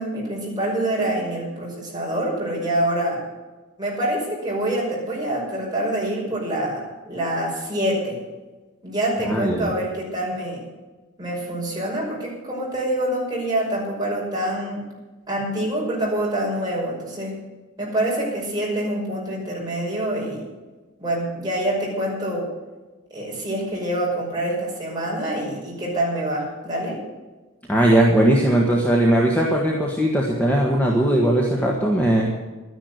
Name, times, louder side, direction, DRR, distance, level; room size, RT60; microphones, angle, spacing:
voice 1, 0.0-3.2 3.8-8.2 8.8-10.6 11.2-14.8 15.3-17.3 17.8-20.4 21.0-22.5 23.1-27.0, right 1 dB, 20° right, -4 dB, 5.8 m, -26 dB
voice 2, 9.2-9.7 27.7-32.3, right 1 dB, 5° left, -2 dB, 1.6 m, -19 dB
12.0 x 11.0 x 8.2 m, 1.2 s
head